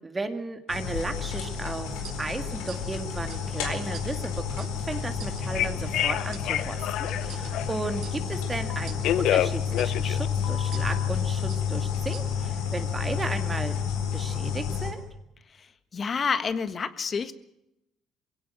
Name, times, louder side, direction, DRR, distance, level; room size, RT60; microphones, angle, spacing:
voice 1, 0.0-13.8 14.1-15.0, right 3 dB, 20° right, 7 dB, 2.1 m, -35 dB
sound 1, 0.7-14.9, left 7 dB, 85° left, 4.2 m, -30 dB
sound 2, 1.1-12.7, right 7 dB, 65° right, 6.2 m, -46 dB
Telephone, 5.4-7.9 8.7-11.1, left 12 dB, 70° left, 0.9 m, -28 dB
voice 2, 15.5-17.4, left 5 dB, 40° left, 13 dB, 1.4 m, -29 dB
22.0 x 17.0 x 7.7 m, 0.84 s
supercardioid pair, 80°, 0 cm